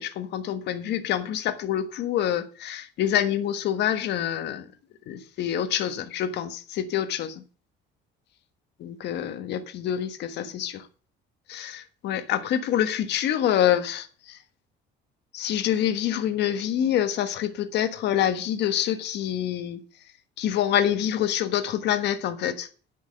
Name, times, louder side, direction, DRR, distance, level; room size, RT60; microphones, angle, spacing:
voice 1, 0.0-4.7 5.1-7.4 8.8-10.9 11.5-14.4 15.3-19.8 20.4-22.7, left 10 dB, 55° left, 1.4 m, -26 dB
10.5 x 6.1 x 7.6 m
cardioid pair, 175°, 21 cm